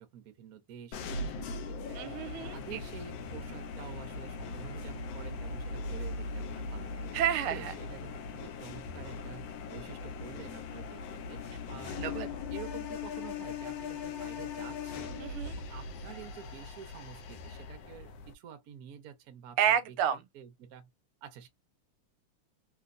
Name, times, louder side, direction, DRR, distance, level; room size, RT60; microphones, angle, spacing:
voice 1, 0.0-7.1 7.5-11.4 11.7-20.0 20.3-20.9 21.2-21.5, right 9 dB, 70° right, 0.9 m, -49 dB
sound 1, 0.9-18.3, left 4 dB, 75° left, 1.2 m, -40 dB
voice 2, 1.9-2.6 7.1-7.7 12.0-12.1 15.2-15.5 19.6-20.2, right 9 dB, 90° right, 1.5 m, -29 dB
3.1 x 3.0 x 2.5 m
omnidirectional pair, 2.4 m